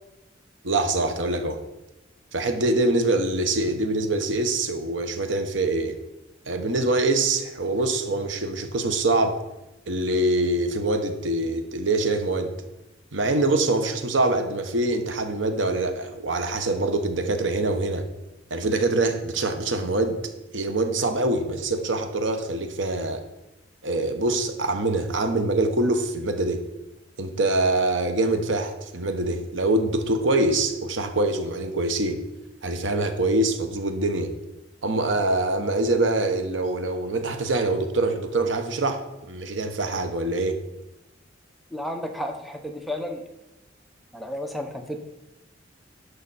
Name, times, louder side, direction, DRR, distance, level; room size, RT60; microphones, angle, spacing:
voice 1, 0.6-1.6 2.3-6.0 6.5-9.4 9.9-12.5 13.1-18.1 18.5-20.2 20.5-23.2 23.8-26.6 27.2-32.2 32.6-34.3 34.8-39.0 39.3-40.6, right 2 dB, 90° right, 7 dB, 1.1 m, -24 dB
voice 2, 41.7-43.2 44.1-45.0, left 1 dB, ahead, 4 dB, 0.9 m, -32 dB
11.0 x 6.7 x 4.2 m, 0.97 s
head